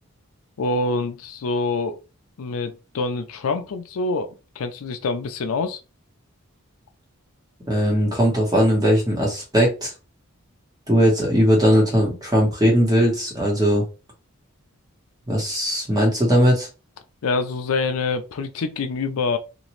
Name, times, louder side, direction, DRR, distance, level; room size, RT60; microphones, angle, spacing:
voice 1, 0.6-2.0 2.4-5.8 17.2-19.4, left 3 dB, 75° left, 0.4 m, -26 dB
voice 2, 7.7-9.9 10.9-13.8 15.3-16.7, equal, 15° right, 1.1 m, -19 dB
2.9 x 2.5 x 3.1 m
head